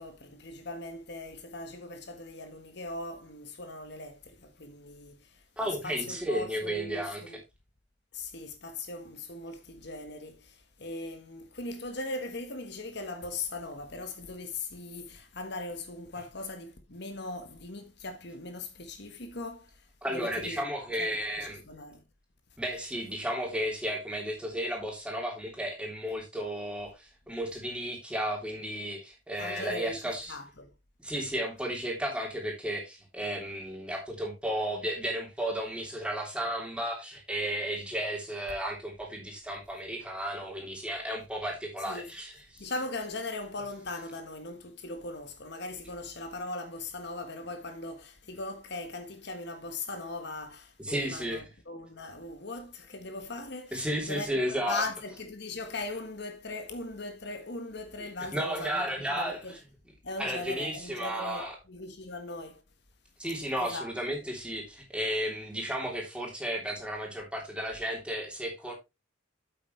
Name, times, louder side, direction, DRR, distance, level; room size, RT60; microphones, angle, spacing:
voice 1, 0.0-7.4 8.1-19.8 20.1-20.6 21.0-21.1 21.4-22.0 29.4-30.0 30.3-30.7 41.9-42.0 42.6-58.8 59.1-59.5 60.0-62.6 63.6-63.9, left 2 dB, 55° left, 1.4 m, -39 dB
voice 2, 5.6-7.2 20.0-21.6 22.6-30.4 31.0-42.7 50.8-51.5 53.7-54.8 58.0-59.6 60.2-61.6 63.2-68.7, equal, 5° right, 3.2 m, -33 dB
8.7 x 8.4 x 3.2 m
head